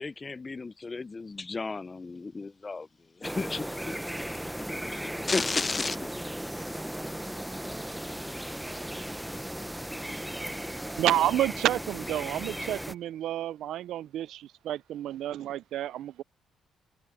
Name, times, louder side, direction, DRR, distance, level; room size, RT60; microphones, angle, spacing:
voice 1, 0.0-2.9 3.2-3.7 4.9-6.1, left 3 dB, 25° left, 0.6 m, -33 dB
sound 1, 3.2-12.9, equal, 5° right, 0.9 m, -36 dB
voice 2, 6.9-8.2 8.6-9.0 10.1-11.2, right 4 dB, 30° right, 6.7 m, -51 dB
voice 3, 11.0-16.2, right 13 dB, 80° right, 0.4 m, -30 dB
cardioid pair, 90°, 0 cm